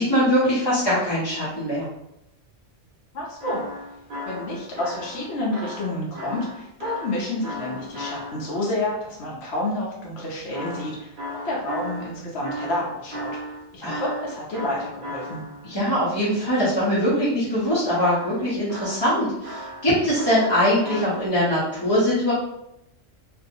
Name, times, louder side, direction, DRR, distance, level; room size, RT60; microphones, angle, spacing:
voice 1, 0.0-1.9 13.8-14.0 15.6-22.3, equal, 25° left, -11 dB, 0.6 m, -22 dB
voice 2, 3.1-3.6 4.3-13.3 13.7-15.4, left 1 dB, 65° left, -4 dB, 0.8 m, -29 dB
sound 1, 3.4-8.7 10.5-15.8 17.9-21.3, equal, 50° right, 0.8 m, -36 dB
2.6 x 2.2 x 2.6 m, 0.82 s
omnidirectional pair, 1.3 m